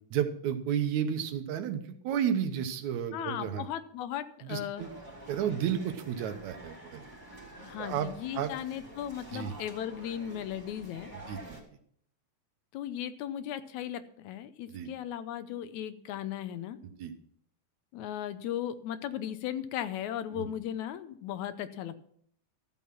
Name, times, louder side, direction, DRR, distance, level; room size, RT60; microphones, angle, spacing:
voice 1, 0.1-3.7 4.4-4.9 5.3-7.0 7.8-8.5 9.3-9.5 11.3-11.6 14.7-14.9 17.0-17.1 20.3-20.5, right 9 dB, 75° right, 8 dB, 2.2 m, -32 dB
voice 2, 3.1-4.9 7.6-11.1 12.7-16.8 17.9-22.0, left 10 dB, 80° left, 12 dB, 2.0 m, -37 dB
sound 1, 4.8-11.6, right 1 dB, 5° right, 2.5 m, -48 dB
13.5 x 7.4 x 5.9 m, 0.63 s
omnidirectional pair, 3.5 m